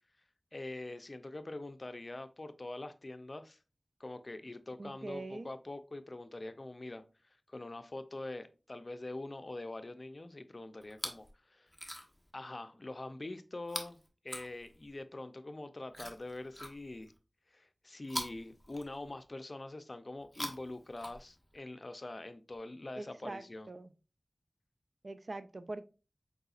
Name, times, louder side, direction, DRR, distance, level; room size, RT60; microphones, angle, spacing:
voice 1, 0.5-3.6 4.0-7.0 7.5-11.7 12.3-14.0 14.2-17.1 17.5-23.7, left 2 dB, 50° left, 0.5 m, -44 dB
voice 2, 4.8-5.5 22.9-23.9 25.0-25.8, right 2 dB, 65° right, 0.4 m, -43 dB
Chewing mastication, 10.8-11.3 11.7-12.3 13.6-15.0 15.9-17.2 18.0-19.3 20.2-21.6 22.5-22.6, equal, ahead, 1.0 m, -44 dB
4.7 x 3.9 x 2.4 m
wide cardioid pair, 50°, 0 cm